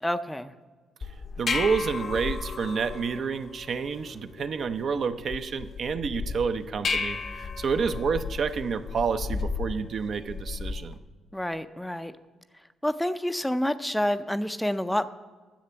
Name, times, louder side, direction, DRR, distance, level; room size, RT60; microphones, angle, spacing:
voice 1, 0.0-0.5 11.3-12.1 12.8-15.1, left 1 dB, 5° left, 12 dB, 0.4 m, -28 dB
sound 1, 1.0-11.0, left 5 dB, 50° left, 0.7 m, -34 dB
voice 2, 1.4-11.0, right 5 dB, 55° right, 10 dB, 0.6 m, -29 dB
10.0 x 7.3 x 6.8 m, 1.4 s
cardioid pair, 90°, 0 cm